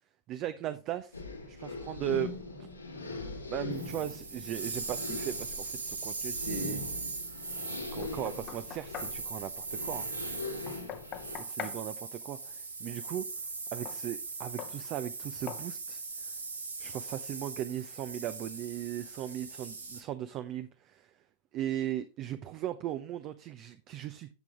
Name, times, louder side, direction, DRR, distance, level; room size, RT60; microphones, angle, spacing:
voice 1, 0.3-1.2 1.5-2.3 3.0-3.1 3.5-6.8 7.9-10.1 11.5-13.3 13.7-16.3 16.8-21.1 21.5-24.3, right 12 dB, 35° right, 0.7 m, -38 dB
sound 1, 1.1-11.4, left 3 dB, 85° left, 2.5 m, -41 dB
sound 2, 3.7-20.0, right 4 dB, 75° right, 1.7 m, -40 dB
Knock, 8.0-9.2 10.7-11.8 13.8-14.0 14.6-14.8 15.5-15.7, left 10 dB, 35° left, 1.0 m, -42 dB
10.5 x 7.7 x 3.6 m
figure-of-eight pair, 90°, 0 cm